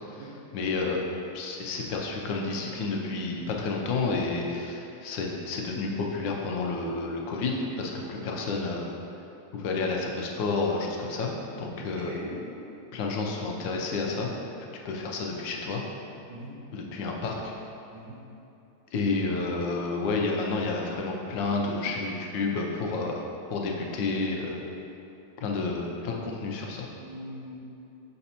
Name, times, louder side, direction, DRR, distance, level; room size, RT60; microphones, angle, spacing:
voice 1, 0.1-1.0 1.3-8.9 9.5-11.3 11.6-12.2 12.9-14.3 14.8-15.8 16.7-17.5 18.9-23.2 23.5-24.6 25.4-26.9, left 3 dB, 80° left, 0 dB, 1.4 m, -30 dB
voice 2, 11.8-12.4 16.3-16.5 17.9-18.2 26.9-27.5, right 2 dB, 80° right, -3 dB, 1.6 m, -41 dB
6.6 x 5.1 x 2.8 m, 2.9 s
omnidirectional pair, 2.0 m